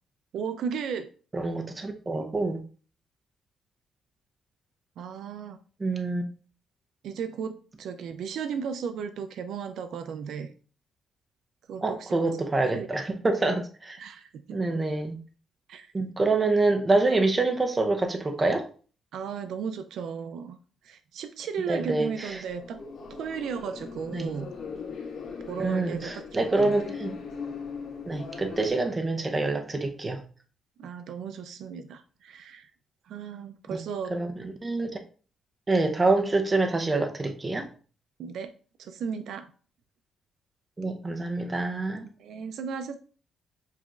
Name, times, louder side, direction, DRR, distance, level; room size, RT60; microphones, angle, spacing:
voice 1, 0.3-1.1 5.0-5.6 7.0-10.5 11.7-12.1 12.6-12.9 14.0-14.6 15.7-15.9 19.1-20.6 20.8-22.8 23.2-24.5 25.5-26.8 30.8-32.7 33.1-34.2 38.2-38.5 38.8-39.5 42.0-43.0, right 6 dB, 70° right, 0.4 m, -35 dB
voice 2, 1.3-2.6 5.8-6.2 11.8-14.0 14.5-15.2 15.9-18.6 21.7-22.4 24.1-24.4 25.6-27.1 28.1-30.2 33.7-33.8 34.1-35.0 35.7-37.7 40.8-42.0, right 2 dB, 20° right, 0.6 m, -26 dB
sound 1, 21.9-28.7, left 5 dB, 75° left, 1.7 m, -40 dB
7.3 x 3.0 x 2.4 m
cardioid pair, 140°, 0 cm